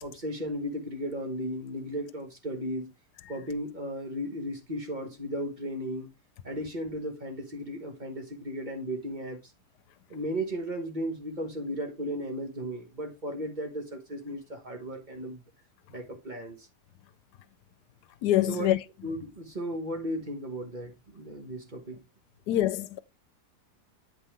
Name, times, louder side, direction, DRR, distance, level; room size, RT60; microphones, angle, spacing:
voice 1, 0.0-2.9 3.3-6.1 6.4-9.4 10.1-15.4 15.9-16.7 18.5-18.7 19.0-22.0, equal, 30° right, 1.3 m, -35 dB
voice 2, 18.2-18.8 22.5-23.0, left 13 dB, 85° left, 1.2 m, -25 dB
8.7 x 5.5 x 3.3 m
omnidirectional pair, 1.7 m